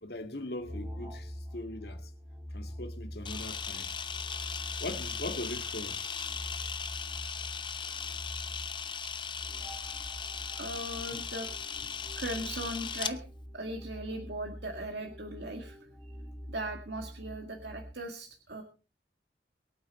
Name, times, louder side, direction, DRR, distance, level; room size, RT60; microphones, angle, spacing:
voice 1, 0.0-2.1 2.5-3.9 4.8-6.1, left 1 dB, 70° left, 2.0 m, -40 dB
sound 1, 0.6-17.9, equal, 15° right, 3.2 m, -45 dB
Camera, 3.2-13.1, left 6 dB, 25° left, 0.8 m, -38 dB
voice 2, 10.6-11.5 12.2-13.2 13.5-16.2 16.5-18.6, right 1 dB, 75° right, 2.0 m, -39 dB
23.0 x 8.9 x 4.3 m
head